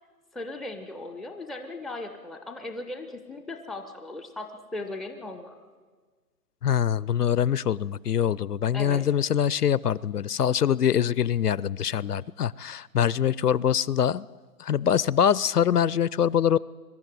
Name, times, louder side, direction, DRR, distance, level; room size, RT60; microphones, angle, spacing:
voice 1, 0.3-5.5 8.7-9.0, left 2 dB, ahead, 6 dB, 0.5 m, -37 dB
voice 2, 6.6-14.3 14.6-16.6, left 9 dB, 70° left, 22 dB, 0.5 m, -24 dB
22.5 x 12.5 x 9.5 m, 1.5 s
hypercardioid pair, 180°, 49 cm